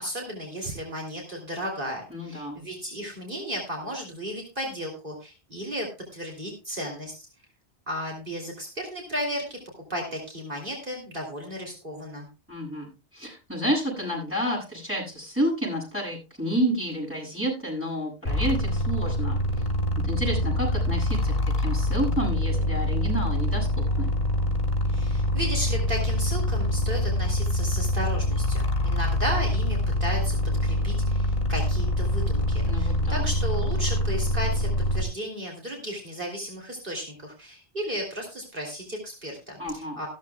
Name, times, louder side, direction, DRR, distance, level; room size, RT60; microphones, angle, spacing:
voice 1, 0.0-7.2 7.9-9.6 9.9-12.2 24.9-30.4 30.6-40.1, equal, 55° right, 0 dB, 3.4 m, -34 dB
voice 2, 2.1-2.6 12.5-19.4 20.0-23.7 24.0-24.1 32.6-33.3 39.6-40.0, equal, 10° right, -5 dB, 8.1 m, -30 dB
sound 1, 18.3-35.0, left 1 dB, 45° left, 3.3 m, -25 dB
15.5 x 13.0 x 2.3 m, 0.29 s
omnidirectional pair, 1.0 m